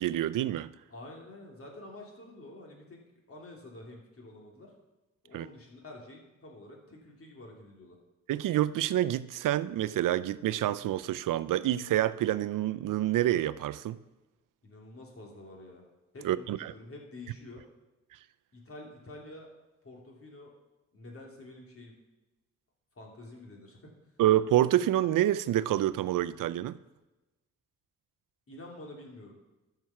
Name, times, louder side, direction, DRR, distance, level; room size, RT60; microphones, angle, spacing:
voice 1, 0.0-0.7 5.3-5.5 8.3-14.0 16.2-16.7 24.2-26.8, right 13 dB, 80° right, 16 dB, 0.5 m, -27 dB
voice 2, 0.9-3.0 3.3-4.7 5.2-8.0 14.6-17.6 18.5-19.5 19.8-20.5 20.9-22.0 22.9-23.9 28.5-29.4, left 2 dB, 45° left, -1 dB, 3.0 m, -48 dB
12.5 x 5.7 x 5.8 m, 1.1 s
cardioid pair, 80°, 32 cm